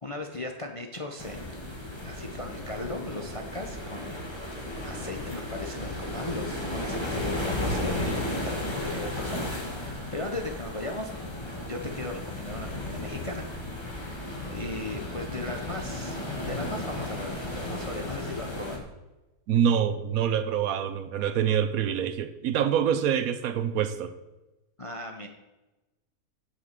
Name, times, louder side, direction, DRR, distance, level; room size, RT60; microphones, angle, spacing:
voice 1, 0.0-1.6 2.0-4.3 4.6-11.1 11.6-13.5 14.0-18.9 24.8-25.3, left 2 dB, 35° left, 4 dB, 0.5 m, -37 dB
sound 1, 1.2-18.8, left 1 dB, 20° left, 1.7 m, -34 dB
voice 2, 19.5-24.1, right 9 dB, 75° right, 11 dB, 1.1 m, -26 dB
8.1 x 5.9 x 7.3 m, 1.1 s
omnidirectional pair, 1.6 m